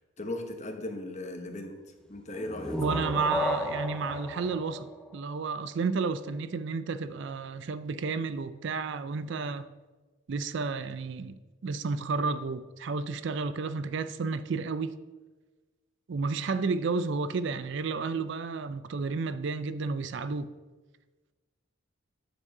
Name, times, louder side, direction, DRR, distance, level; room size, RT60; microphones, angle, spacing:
voice 1, 0.2-1.8 2.1-3.4, left 1 dB, 35° left, 1.1 m, -37 dB
sound 1, 2.3-5.9, left 1 dB, 5° left, 0.6 m, -34 dB
voice 2, 2.8-9.7 10.3-14.9 16.1-20.5, right 4 dB, 60° right, 0.4 m, -31 dB
9.7 x 7.2 x 4.8 m
head